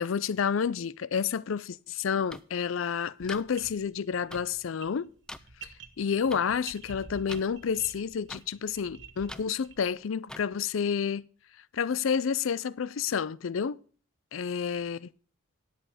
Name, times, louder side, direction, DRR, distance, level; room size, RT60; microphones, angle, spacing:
voice 1, 0.0-5.1 5.6-5.7 6.0-11.2 11.7-13.8 14.3-15.1, left 7 dB, 80° left, 0.4 m, -30 dB
sound 1, 2.3-2.4 3.3-3.4 4.3-4.4 5.3-5.4 6.3-6.4 7.3-7.4 8.3-8.4 9.3-9.4 10.3-10.4, left 1 dB, 5° left, 0.4 m, -41 dB
sound 2, 3.2-9.9, right 5 dB, 60° right, 1.0 m, -49 dB
10.5 x 8.5 x 4.9 m
head